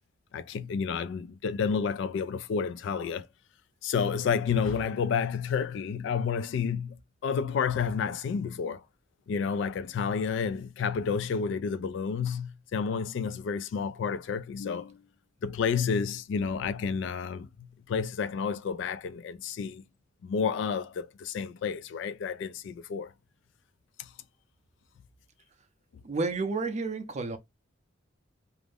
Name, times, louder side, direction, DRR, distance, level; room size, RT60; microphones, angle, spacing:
voice 1, 0.3-3.3 3.8-7.0 7.2-8.8 9.3-15.0 15.4-19.8 20.2-23.1 24.0-24.1, left 6 dB, 65° left, 0.3 m, -30 dB
voice 2, 26.0-27.4, right 3 dB, 35° right, 0.5 m, -30 dB
2.5 x 2.1 x 3.3 m
head